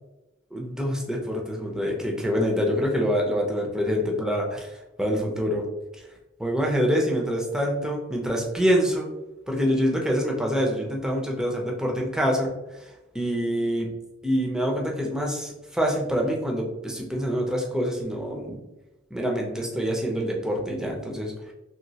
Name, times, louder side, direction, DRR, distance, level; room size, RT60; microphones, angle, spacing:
voice 1, 0.5-4.7 5.0-5.7 6.4-9.1 9.5-12.9 13.1-13.9 14.2-18.6 19.1-21.3, equal, 5° right, -1 dB, 0.5 m, -26 dB
3.0 x 2.9 x 2.7 m, 1.0 s
head